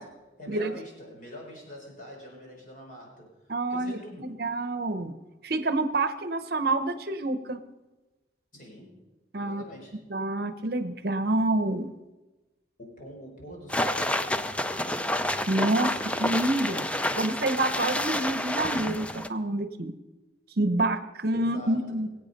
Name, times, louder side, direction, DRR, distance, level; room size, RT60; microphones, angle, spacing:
voice 1, 0.0-4.4 8.5-9.0 9.4-10.0 12.8-14.8 21.3-22.0, equal, 45° left, -1 dB, 4.5 m, -45 dB
voice 2, 3.5-5.1 5.4-7.6 9.3-9.6 10.1-11.9 15.5-15.9 16.2-16.9 17.2-19.9 20.6-22.1, right 2 dB, 55° right, 10 dB, 0.8 m, -27 dB
sound 1, 13.7-19.3, left 1 dB, 5° left, 0.4 m, -29 dB
22.0 x 8.4 x 5.3 m, 1.1 s
head